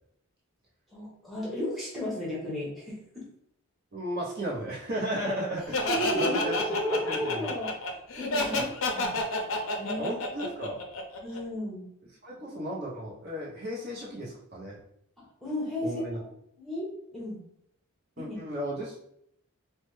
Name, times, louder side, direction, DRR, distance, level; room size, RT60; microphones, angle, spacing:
voice 1, 0.9-3.3 5.3-5.4 5.9-7.7 8.1-8.7 8.9-9.2 9.8-10.3 11.2-11.9 15.2-16.0 16.3-17.4 18.2-18.4, left 1 dB, ahead, -6 dB, 0.9 m, -34 dB
voice 2, 3.9-6.6 6.9-7.5 8.5-8.7 10.0-10.8 12.2-14.8 15.8-16.2 18.2-19.0, equal, 45° right, -4 dB, 0.7 m, -34 dB
Laughter, 5.7-11.4, left 2 dB, 60° left, 0.5 m, -29 dB
3.1 x 2.1 x 3.1 m, 0.73 s
head